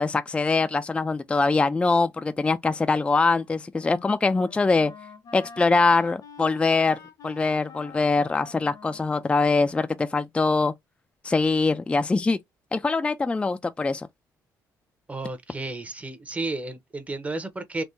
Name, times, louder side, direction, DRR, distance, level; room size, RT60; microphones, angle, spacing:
voice 1, 0.0-4.9 5.3-7.0 7.2-10.7 11.2-12.4 12.7-14.1, left 3 dB, 15° left, 0.3 m, -23 dB
Wind instrument woodwind instrument, 3.3-10.5, left 5 dB, 60° left, 0.7 m, -47 dB
voice 2, 15.1-17.8, right 2 dB, 20° right, 0.8 m, -32 dB
3.5 x 2.2 x 2.6 m
cardioid pair, 90°, 7 cm